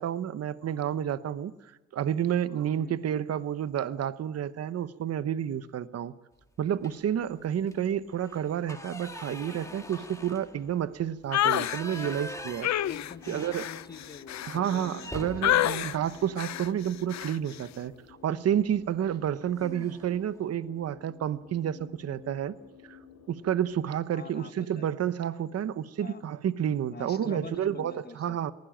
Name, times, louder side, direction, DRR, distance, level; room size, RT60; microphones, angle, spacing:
voice 1, 0.0-6.1 6.6-12.7 13.3-13.7 14.5-22.5 22.9-23.0 23.3-28.5, right 9 dB, 55° right, 14 dB, 0.9 m, -30 dB
sound 1, 6.8-7.2 7.6-7.8 8.1-14.2 14.5-14.6 15.0-17.1 18.5-18.7 19.1-19.3 19.6-20.2, left 1 dB, 10° left, 2.2 m, -44 dB
sound 2, 11.3-11.8 12.6-15.1 15.4-16.0 16.4-16.7 17.1-17.4, left 13 dB, 65° left, 0.7 m, -28 dB
sound 3, 11.9-23.9, left 6 dB, 85° left, 3.4 m, -53 dB
voice 2, 12.8-15.7 19.6-19.9 24.1-24.9 26.0-26.2 26.9-28.4, left 5 dB, 30° left, 11 dB, 1.4 m, -45 dB
22.5 x 16.0 x 9.0 m, 1.1 s
cardioid pair, 90°, 30 cm